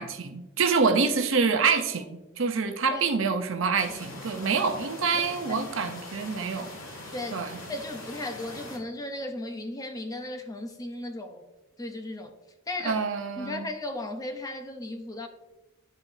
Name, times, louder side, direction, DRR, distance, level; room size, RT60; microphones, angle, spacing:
voice 1, 0.0-6.7 7.3-7.6 12.8-13.7, right 5 dB, 65° right, 7 dB, 0.6 m, -26 dB
sound 1, 3.8-8.8, left 2 dB, 70° left, 1.7 m, -42 dB
voice 2, 7.1-11.5 11.8-12.3 12.7-13.0 13.4-15.3, left 1 dB, 15° left, 5 dB, 0.5 m, -36 dB
10.5 x 4.3 x 2.6 m, 1.0 s
head